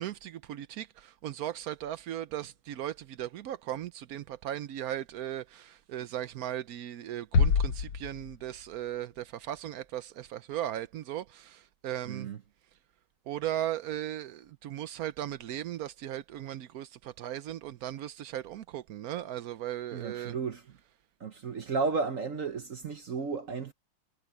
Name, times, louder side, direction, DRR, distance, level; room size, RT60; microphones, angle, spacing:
voice 1, 0.0-12.3 13.3-20.3, right 12 dB, 75° right, 0.8 m, -37 dB
sound 1, 7.3-9.0, left 5 dB, 80° left, 2.2 m, -27 dB
voice 2, 12.0-12.4 19.9-20.8 21.2-23.7, right 4 dB, 50° right, 1.1 m, -33 dB
omnidirectional pair, 2.3 m